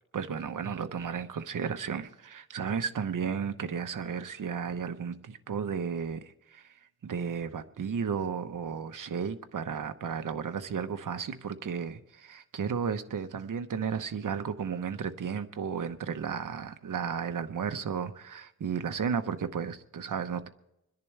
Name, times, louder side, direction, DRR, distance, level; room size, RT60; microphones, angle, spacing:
voice 1, 0.1-20.5, right 6 dB, 65° right, 8 dB, 1.0 m, -34 dB
26.5 x 10.5 x 3.3 m, 0.87 s
wide cardioid pair, 100°, 34 cm